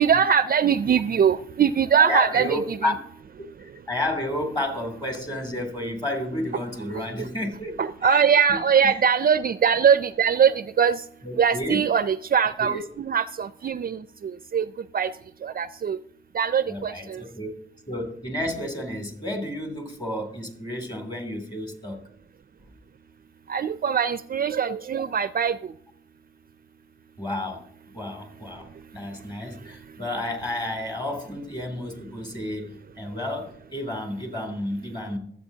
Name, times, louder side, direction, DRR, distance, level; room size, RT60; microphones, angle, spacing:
voice 1, 0.0-2.8 6.9-7.3 7.8-11.0 11.4-14.7 14.9-15.1 15.4-16.0 16.3-17.2 23.5-25.6, right 7 dB, 45° right, 14 dB, 0.4 m, -22 dB
voice 2, 2.0-3.0 3.6-8.2 8.5-9.0 11.2-11.8 12.6-12.8 16.7-17.5 17.9-22.0 27.2-27.6 27.9-28.7 28.9-35.2, left 1 dB, 20° left, 3 dB, 2.9 m, -31 dB
24.5 x 8.2 x 2.8 m, 0.66 s
cardioid pair, 95°, 21 cm